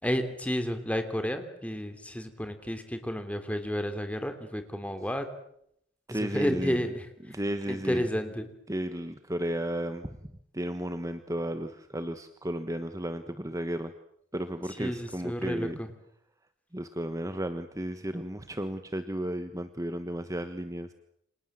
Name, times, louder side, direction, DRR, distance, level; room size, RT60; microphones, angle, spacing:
voice 1, 0.0-5.3 6.1-7.1 7.7-8.5 14.8-15.9, equal, 5° left, 8 dB, 3.2 m, -31 dB
voice 2, 6.1-6.9 7.3-8.1 8.7-10.1 10.5-13.9 14.3-15.8 16.7-20.9, right 1 dB, 15° right, 9 dB, 1.3 m, -33 dB
29.5 x 26.5 x 7.6 m, 0.74 s
head